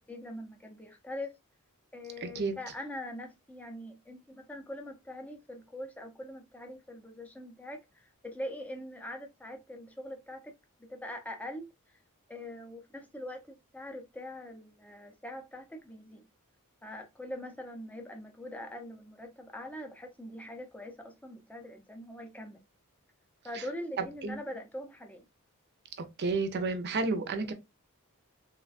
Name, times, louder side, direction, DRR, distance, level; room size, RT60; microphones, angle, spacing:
voice 1, 0.1-1.4 1.9-10.5 10.8-11.7 12.3-16.2 16.8-22.6 23.4-25.3, left 1 dB, 5° left, 0.5 m, -43 dB
voice 2, 2.2-2.6 23.5-23.6 24.0-24.4 26.2-27.5, right 3 dB, 50° right, 0.5 m, -31 dB
3.3 x 2.2 x 2.4 m
head